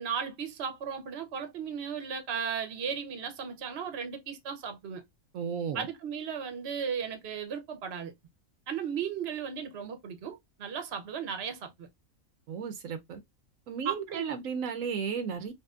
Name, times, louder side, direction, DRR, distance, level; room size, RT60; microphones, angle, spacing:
voice 1, 0.0-5.0 5.7-8.1 8.7-11.9 13.8-14.2, right 7 dB, 55° right, 1.0 m, -36 dB
voice 2, 5.3-5.9 12.5-13.2 13.7-15.5, right 6 dB, 80° right, 1.1 m, -34 dB
5.3 x 2.6 x 2.4 m
omnidirectional pair, 1.4 m